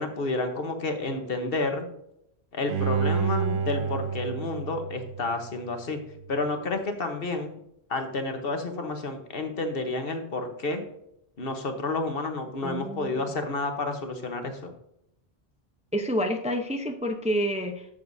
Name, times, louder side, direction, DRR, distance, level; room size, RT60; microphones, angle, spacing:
voice 1, 0.0-1.9 2.5-6.0 6.3-7.6 7.9-10.8 11.4-14.7, left 2 dB, 60° left, 6 dB, 1.3 m, -30 dB
Bowed string instrument, 2.7-5.8 6.2-6.3, right 6 dB, 85° right, 0.9 m, -29 dB
voice 2, 3.2-3.6 12.6-13.2 15.9-17.9, equal, 5° right, 4 dB, 0.7 m, -29 dB
12.0 x 6.9 x 2.7 m, 0.78 s
omnidirectional pair, 1.1 m